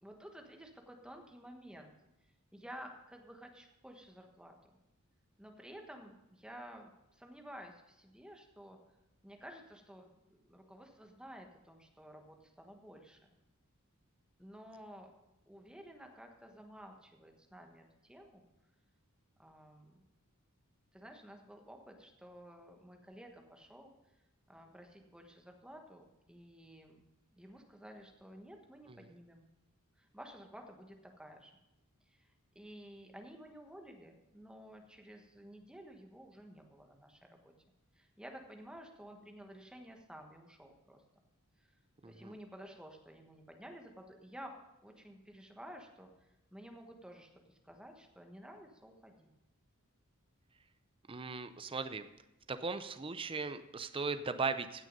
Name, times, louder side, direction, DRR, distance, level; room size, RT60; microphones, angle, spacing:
voice 1, 0.0-1.9 2.5-4.7 5.4-8.8 9.2-13.3 14.4-15.1 15.5-18.4 19.4-20.0 20.9-23.9 24.5-27.0 27.3-29.5 30.0-31.5 32.1-32.3 32.5-37.5 37.9-41.0 41.6-41.7 42.0-44.6 44.8-49.3, equal, 5° right, 3 dB, 1.3 m, -53 dB
voice 2, 42.0-42.3 51.1-52.1 52.5-54.9, right 4 dB, 25° right, 10 dB, 0.6 m, -38 dB
16.5 x 6.4 x 5.4 m, 0.93 s
head